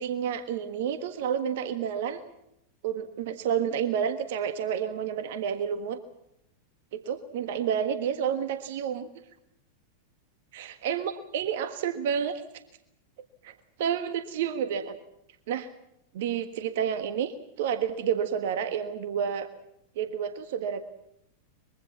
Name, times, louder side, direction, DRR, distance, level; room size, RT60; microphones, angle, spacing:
voice 1, 0.0-2.2 2.8-6.0 6.9-9.1 10.5-12.4 13.4-13.5 13.8-15.0 15.5-15.7 16.1-19.5 19.9-20.8, right 8 dB, 55° right, 10 dB, 1.5 m, -30 dB
24.0 x 22.5 x 7.3 m, 0.78 s
figure-of-eight pair, 90°, 0 cm